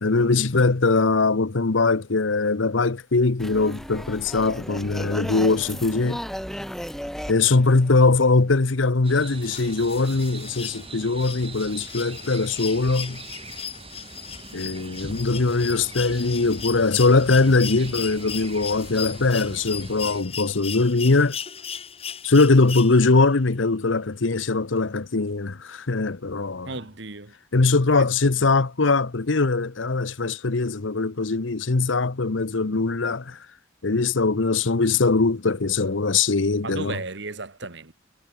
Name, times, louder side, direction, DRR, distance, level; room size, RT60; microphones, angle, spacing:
voice 1, 0.0-6.2 7.3-13.2 14.5-21.4 22.2-26.7 27.5-33.4 33.8-37.0, left 3 dB, 75° left, 1.0 m, -21 dB
sound 1, 3.4-8.6, equal, ahead, 6.1 m, -35 dB
sound 2, 9.0-20.2, right 3 dB, 30° right, 2.9 m, -41 dB
sound 3, 9.4-23.3 24.8-24.9, left 8 dB, 30° left, 1.8 m, -37 dB
voice 2, 26.7-27.3 28.0-28.1 28.4-28.5 36.6-37.9, right 3 dB, 65° right, 1.9 m, -35 dB
head